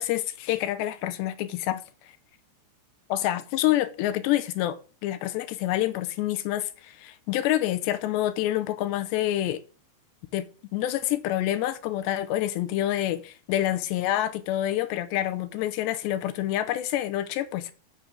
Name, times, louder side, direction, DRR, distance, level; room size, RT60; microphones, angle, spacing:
voice 1, 0.0-1.8 3.1-9.6 10.3-10.5 10.7-17.7, left 13 dB, 90° left, 3.1 m, -27 dB
8.2 x 6.6 x 7.4 m
omnidirectional pair, 4.9 m